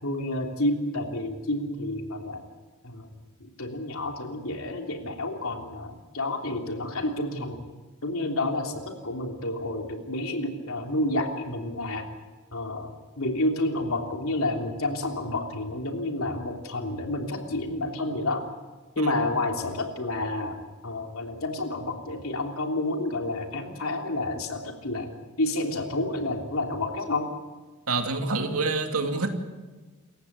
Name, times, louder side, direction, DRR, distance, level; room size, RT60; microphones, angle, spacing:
voice 1, 0.0-2.4 2.8-3.1 3.4-7.6 8.0-12.1 12.5-18.4 18.9-20.6 20.8-25.1 25.4-27.3, left 2 dB, 75° left, 3 dB, 3.4 m, -29 dB
voice 2, 27.9-29.3, right 3 dB, 90° right, 5 dB, 2.6 m, -27 dB
28.0 x 15.0 x 8.2 m, 1.3 s
head